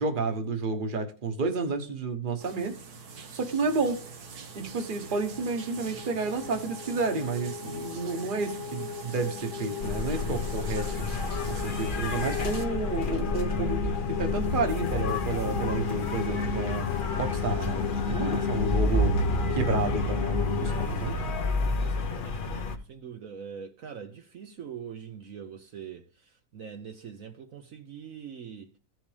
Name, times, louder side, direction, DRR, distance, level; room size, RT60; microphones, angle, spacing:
voice 1, 0.0-2.8 3.3-4.0 4.5-10.9 11.5-16.9 17.2-19.2 19.5-21.2, right 3 dB, 35° right, 1.3 m, -31 dB
sound 1, 2.4-12.6, right 5 dB, 85° right, 1.8 m, -43 dB
sound 2, 5.2-20.9, left 6 dB, 60° left, 1.0 m, -35 dB
sound 3, 9.8-22.8, left 2 dB, 40° left, 1.0 m, -30 dB
voice 2, 21.8-28.7, right 7 dB, 65° right, 1.2 m, -43 dB
15.5 x 6.2 x 3.3 m
omnidirectional pair, 1.6 m